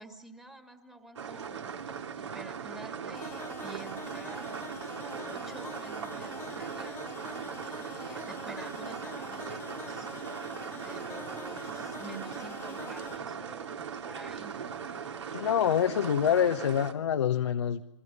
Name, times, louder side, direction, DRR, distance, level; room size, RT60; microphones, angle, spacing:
voice 1, 0.0-10.1 10.7-14.6, right 2 dB, 5° right, 6 dB, 2.2 m, -49 dB
sound 1, 1.2-16.9, right 7 dB, 65° right, 3.1 m, -39 dB
sound 2, 3.1-13.2, left 7 dB, 15° left, 1.2 m, -46 dB
voice 2, 15.3-17.8, left 9 dB, 60° left, 6 dB, 1.0 m, -26 dB
28.0 x 23.0 x 5.5 m, 1.0 s
figure-of-eight pair, 120°, 16 cm